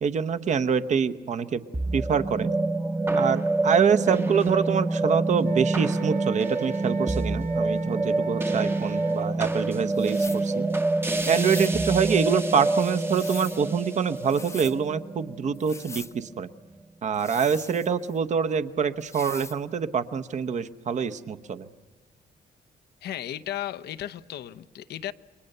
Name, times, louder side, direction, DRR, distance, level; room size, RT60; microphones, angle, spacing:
voice 1, 0.0-1.6 1.9-2.5 3.1-10.7 11.3-16.5 17.0-21.7, right 6 dB, 45° right, 1.0 m, -25 dB
sound 1, 1.7-16.2, right 2 dB, 15° right, 0.9 m, -27 dB
Wind instrument woodwind instrument, 5.4-9.3, right 7 dB, 65° right, 1.5 m, -41 dB
sound 2, 9.9-10.5 11.2-11.8 12.8-13.6 14.2-14.8 15.5-16.1 17.1-18.2 19.0-19.6, left 3 dB, 15° left, 0.8 m, -42 dB
voice 2, 23.0-25.1, left 12 dB, 80° left, 0.8 m, -35 dB
29.5 x 22.5 x 6.7 m
cardioid pair, 150°, 17 cm